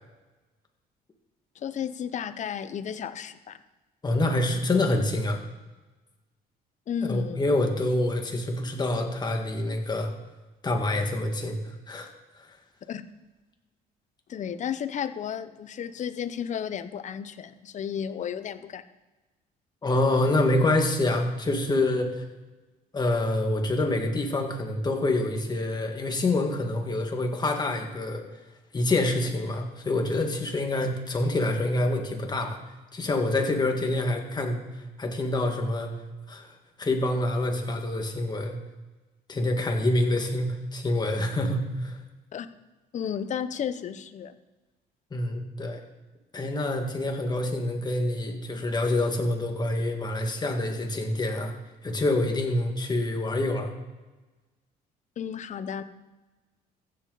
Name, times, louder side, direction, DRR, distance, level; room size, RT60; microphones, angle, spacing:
voice 1, 1.5-3.6 6.9-7.4 12.9-13.0 14.3-18.8 42.3-42.5 42.9-44.4 55.2-55.8, left 8 dB, 45° left, 12 dB, 0.8 m, -33 dB
voice 2, 4.0-5.4 7.0-10.1 10.6-11.6 11.9-12.1 12.4-12.5 19.8-22.2 22.9-28.2 28.7-32.6 32.9-34.6 35.0-35.9 36.3-36.5 36.8-38.5 39.3-42.0 45.1-45.8 46.3-51.5 51.8-53.7, left 2 dB, 25° left, 3 dB, 1.8 m, -26 dB
15.0 x 7.6 x 4.0 m, 1.2 s
cardioid pair, 110°, 17 cm